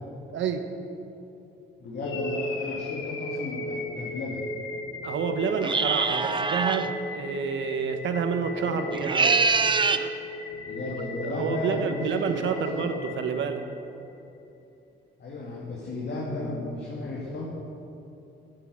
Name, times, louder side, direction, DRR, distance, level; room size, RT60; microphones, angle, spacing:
voice 1, 0.3-0.7 5.0-9.5 10.8-10.9 11.2-13.6, right 6 dB, 70° right, 7 dB, 1.1 m, -29 dB
voice 2, 1.8-4.4 8.5-9.0 10.6-12.9 15.2-17.5, left 2 dB, 60° left, -5 dB, 2.4 m, -34 dB
sound 1, 2.0-14.1, left 1 dB, 80° left, 1.5 m, -36 dB
sound 2, 5.6-6.9 8.9-10.1, right 4 dB, 25° right, 0.6 m, -24 dB
8.9 x 8.9 x 8.5 m, 2.8 s
cardioid pair, 90°, 20 cm